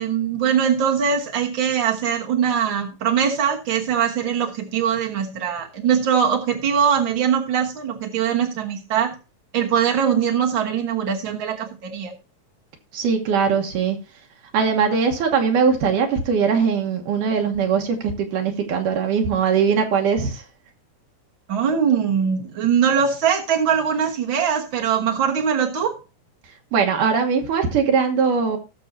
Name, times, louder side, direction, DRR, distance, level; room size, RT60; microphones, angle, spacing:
voice 1, 0.0-9.1 9.5-12.1 21.5-26.0, right 7 dB, 55° right, -1 dB, 1.4 m, -21 dB
voice 2, 12.9-14.0 14.5-20.4 26.7-28.6, right 6 dB, 75° right, 2 dB, 2.8 m, -20 dB
18.5 x 6.9 x 2.7 m, 0.30 s
omnidirectional pair, 3.9 m